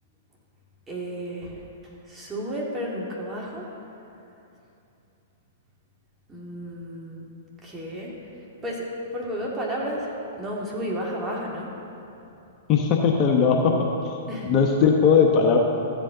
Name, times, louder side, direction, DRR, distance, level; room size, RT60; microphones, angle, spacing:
voice 1, 0.9-1.6 2.1-3.6 6.3-7.2 7.6-8.1 8.6-8.9 9.1-11.7 14.3-14.5, equal, 15° right, -4 dB, 2.4 m, -32 dB
voice 2, 12.7-13.9 14.5-15.6, left 6 dB, 35° left, 1 dB, 1.0 m, -19 dB
14.0 x 8.4 x 3.9 m, 2.8 s
hypercardioid pair, 120°, 0 cm